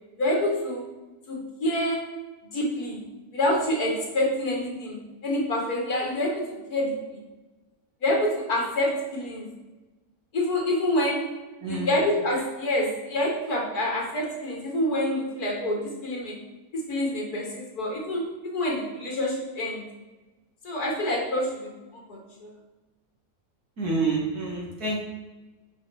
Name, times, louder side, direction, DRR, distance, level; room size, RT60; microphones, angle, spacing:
voice 1, 0.2-0.8 1.3-2.2 2.5-3.0 3.3-7.2 8.0-9.5 10.3-11.3 11.7-16.4 16.7-19.8 20.6-22.5, left 1 dB, 75° left, -2 dB, 2.6 m, -27 dB
voice 2, 11.6-11.9 23.8-25.0, right 3 dB, 80° right, -3 dB, 2.8 m, -27 dB
9.8 x 4.7 x 4.3 m, 1.1 s
omnidirectional pair, 1.6 m